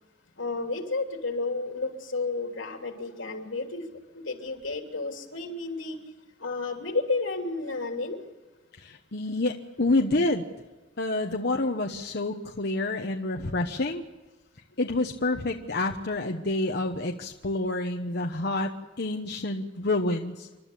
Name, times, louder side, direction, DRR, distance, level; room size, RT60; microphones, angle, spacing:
voice 1, 0.4-3.8 4.1-6.0 6.4-8.2, left 3 dB, 85° left, 3 dB, 3.1 m, -31 dB
voice 2, 8.8-10.4 11.0-14.0 14.8-18.7 19.0-20.5, left 2 dB, 55° left, 3 dB, 1.1 m, -28 dB
28.5 x 12.5 x 8.5 m, 1.2 s
head